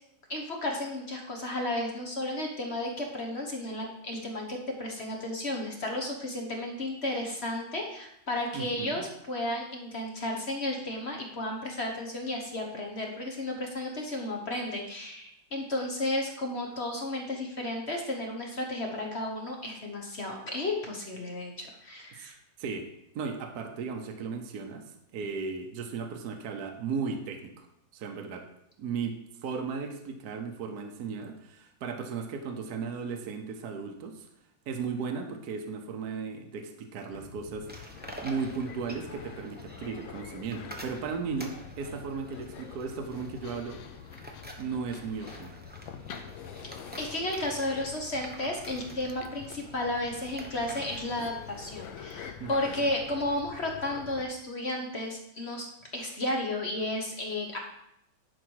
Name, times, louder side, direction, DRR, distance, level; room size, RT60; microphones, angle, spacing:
voice 1, 0.3-22.3 47.0-55.7 55.9-57.6, left 1 dB, 40° left, 1 dB, 1.2 m, -33 dB
voice 2, 8.5-9.0 22.1-22.3 22.6-22.9 23.1-27.7 27.9-28.4 28.8-34.3 34.7-37.9 38.2-43.8 44.6-45.6 52.4-52.9, right 5 dB, 60° right, 4 dB, 1.3 m, -36 dB
sound 1, 37.1-54.3, left 8 dB, 85° left, 1.5 m, -46 dB
sound 2, 37.7-51.7, right 1 dB, 10° right, 0.5 m, -48 dB
11.0 x 5.1 x 4.6 m, 0.77 s
omnidirectional pair, 2.1 m